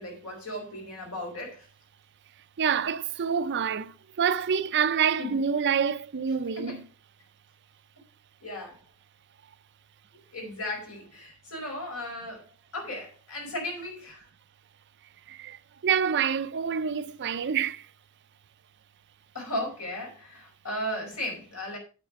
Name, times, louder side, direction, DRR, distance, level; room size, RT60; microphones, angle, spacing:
voice 1, 0.0-1.7 5.2-5.4 6.6-6.8 8.4-8.8 10.1-12.5 12.7-14.3 19.3-21.8, left 1 dB, 70° left, 4.8 m, -36 dB
voice 2, 2.6-6.8 15.3-17.9, right 7 dB, 50° right, 0.5 m, -27 dB
9.0 x 8.0 x 4.7 m
head